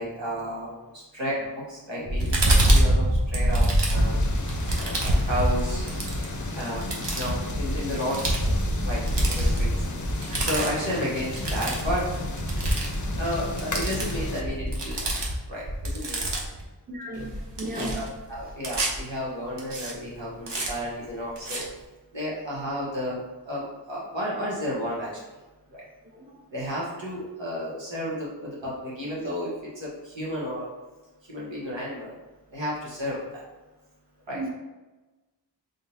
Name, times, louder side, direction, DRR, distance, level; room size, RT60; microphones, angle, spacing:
voice 1, 0.0-4.2 4.8-5.9 6.5-8.5 8.8-9.7 10.4-12.0 13.2-15.0 15.5-16.4 17.9-21.7 22.1-23.2 23.5-25.1 25.7-25.8 26.5-30.7 31.3-32.1 32.5-33.4 34.3-34.4, equal, 85° right, -6 dB, 1.3 m, -32 dB
sound 1, 2.1-16.6 17.1-19.0 19.6-19.9 20.5-20.7 21.4-21.6, right 1 dB, 70° right, 0.8 m, -25 dB
sound 2, 3.9-14.4, left 3 dB, 45° left, 0.5 m, -35 dB
voice 2, 16.9-18.0 26.1-26.3 34.3-34.5, right 1 dB, 20° right, -1 dB, 0.7 m, -34 dB
3.7 x 3.5 x 2.7 m, 1.2 s
wide cardioid pair, 40°, 44 cm